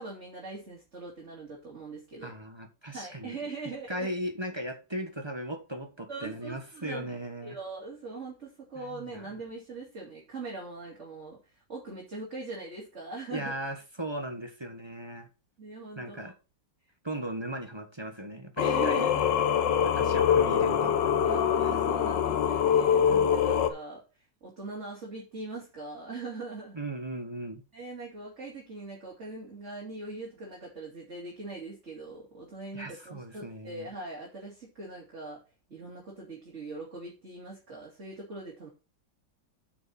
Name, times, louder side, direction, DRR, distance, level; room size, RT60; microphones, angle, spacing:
voice 1, 0.0-2.3 2.9-4.1 6.1-7.2 7.4-11.4 11.7-13.5 15.6-16.3 18.6-19.2 19.9-20.0 21.2-24.0 24.4-26.8 27.7-35.4 35.7-38.7, right 3 dB, 40° right, 3.1 m, -41 dB
voice 2, 2.2-3.4 3.9-7.6 8.8-9.3 13.3-15.3 16.0-16.3 17.0-19.1 19.9-21.1 21.6-21.8 26.7-27.6 32.7-33.9, right 1 dB, 15° right, 1.1 m, -37 dB
Singing, 18.6-23.7, left 8 dB, 80° left, 1.6 m, -24 dB
8.8 x 6.2 x 4.2 m
omnidirectional pair, 2.0 m